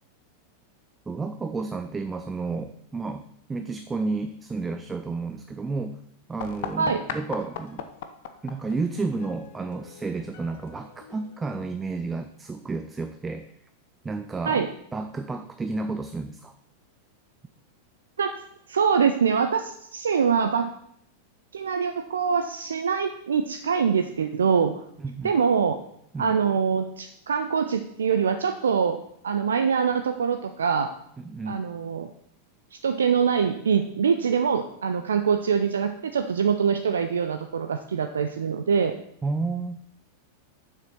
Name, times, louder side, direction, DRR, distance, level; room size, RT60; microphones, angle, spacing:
voice 1, 1.1-6.0 6.3-7.9 8.4-13.5 14.0-16.5 25.0-25.3 26.1-26.4 31.2-31.7 39.2-39.8, right 3 dB, 15° right, 9 dB, 0.5 m, -31 dB
sound 1, 6.4-11.9, left 8 dB, 50° left, 0.9 m, -40 dB
voice 2, 18.7-20.7 21.5-24.8 25.2-25.8 26.2-29.0 29.2-30.9 31.5-32.1 32.7-38.9, right 6 dB, 70° right, 7 dB, 0.5 m, -24 dB
7.3 x 6.7 x 6.1 m, 0.71 s
figure-of-eight pair, 90°, 0 cm